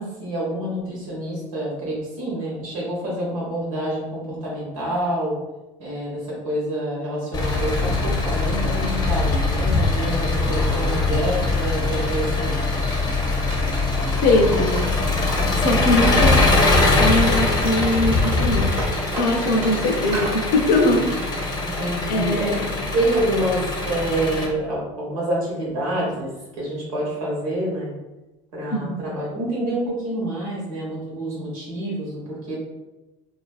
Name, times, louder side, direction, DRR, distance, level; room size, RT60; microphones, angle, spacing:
voice 1, 0.0-5.4 5.8-12.6 21.6-22.5 22.9-27.9 28.5-32.6, right 1 dB, 85° right, -5 dB, 1.1 m, -27 dB
Engine, 7.3-24.5, left 3 dB, 25° left, 0.6 m, -22 dB
Wood, 12.9-15.5 15.9-16.9 17.2-20.4 20.8-21.5, right 1 dB, 40° right, 0.9 m, -35 dB
voice 2, 14.2-14.8 15.5-16.5 17.0-18.8 19.2-21.4 22.0-22.6 28.7-29.0, left 1 dB, 65° left, 2 dB, 0.6 m, -21 dB
2.4 x 2.2 x 2.3 m, 1.0 s
hypercardioid pair, 80°, 17 cm